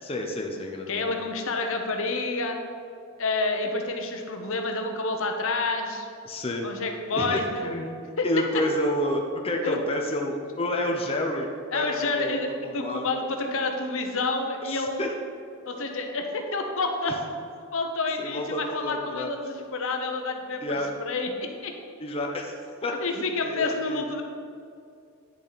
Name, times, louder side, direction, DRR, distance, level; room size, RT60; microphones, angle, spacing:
voice 1, 0.0-1.2 6.2-6.7 7.2-7.9 8.2-11.5 11.7-13.2 14.6-15.1 17.1-17.2 18.2-19.3 20.6-20.9 22.0-24.0, left 1 dB, 25° left, 1 dB, 0.8 m, -30 dB
voice 2, 0.9-2.6 3.2-6.1 6.6-7.7 8.2-8.3 9.6-9.8 11.7-15.0 15.6-17.2 17.7-21.7 23.0-24.2, left 3 dB, 65° left, 3 dB, 1.0 m, -29 dB
10.0 x 7.0 x 4.1 m, 2.4 s
head